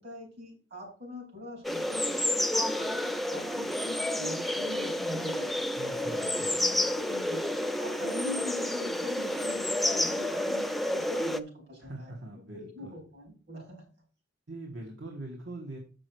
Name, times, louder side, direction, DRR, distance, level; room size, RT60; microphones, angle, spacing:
voice 1, 0.0-7.4 7.8-12.1 12.5-13.9, left 1 dB, 60° right, -1 dB, 4.5 m, -42 dB
sound 1, 1.6-11.4, left 1 dB, ahead, 0.4 m, -30 dB
voice 2, 5.8-7.0 11.8-13.0 14.5-15.8, right 1 dB, 75° right, 1 dB, 1.6 m, -43 dB
7.9 x 6.2 x 4.7 m, 0.39 s
head